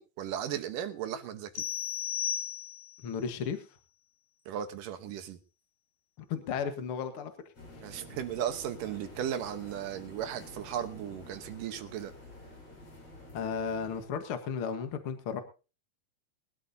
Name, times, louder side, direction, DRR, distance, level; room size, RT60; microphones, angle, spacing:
voice 1, 0.0-1.6 4.5-5.4 7.8-12.1, right 10 dB, 70° right, 9 dB, 2.5 m, -36 dB
sound 1, 1.6-3.1, left 10 dB, 80° left, 3.0 m, -34 dB
voice 2, 3.0-3.6 6.2-7.3 13.3-15.4, left 6 dB, 55° left, 7 dB, 1.5 m, -34 dB
sound 2, 7.5-14.0, left 1 dB, 40° left, 7.2 m, -50 dB
22.5 x 12.5 x 2.8 m, 0.33 s
omnidirectional pair, 4.4 m